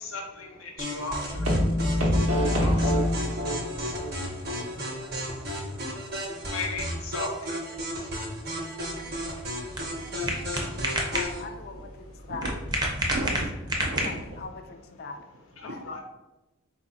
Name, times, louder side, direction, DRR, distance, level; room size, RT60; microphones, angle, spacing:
voice 1, 0.0-1.9 2.5-3.1 4.1-4.8 5.7-6.0 6.5-8.1 8.7-9.8 10.1-10.3 12.2-12.3 15.6-16.0, left 2 dB, 80° left, 1 dB, 0.8 m, -38 dB
sound 1, 0.8-11.4, equal, 45° right, 0.8 m, -34 dB
sound 2, 1.3-4.1 4.5-4.6 5.0-5.1, left 1 dB, 85° right, 1.1 m, -25 dB
sound 3, 8.8-14.5, right 1 dB, 20° right, 0.6 m, -31 dB
voice 2, 11.1-12.5 14.0-15.2 15.6-15.8, left 4 dB, 45° left, 6 dB, 0.4 m, -40 dB
voice 3, 13.1-14.2 15.7-15.8, right 2 dB, 70° right, 4 dB, 0.5 m, -35 dB
4.0 x 2.8 x 3.6 m, 1.0 s
head